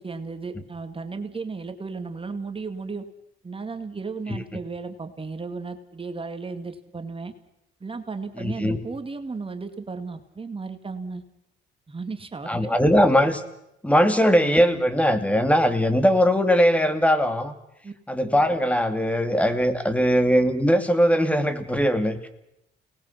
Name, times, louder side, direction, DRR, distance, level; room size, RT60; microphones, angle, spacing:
voice 1, 0.0-3.0 3.4-7.3 7.8-11.2 11.9-12.8 17.8-17.9, right 4 dB, 25° right, 7 dB, 2.3 m, -34 dB
voice 2, 8.4-8.8 12.5-13.4 13.8-17.5 18.1-22.3, equal, 5° left, 9 dB, 2.7 m, -20 dB
29.5 x 20.0 x 5.9 m, 0.82 s
cardioid pair, 90°, 20 cm